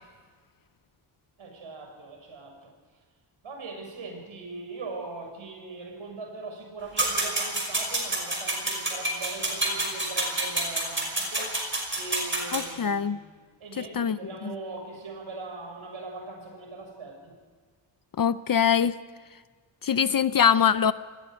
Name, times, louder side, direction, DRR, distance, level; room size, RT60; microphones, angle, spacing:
voice 1, 1.4-2.7 3.4-11.6 11.9-17.3, right 3 dB, 70° right, 2 dB, 6.8 m, -40 dB
sound 1, 7.0-12.6, right 2 dB, 25° right, 5.5 m, -28 dB
voice 2, 12.5-13.2 13.8-14.5 18.2-19.0 19.8-20.9, left 8 dB, 45° left, 13 dB, 0.6 m, -23 dB
28.5 x 20.0 x 5.2 m, 1.5 s
wide cardioid pair, 165°, 49 cm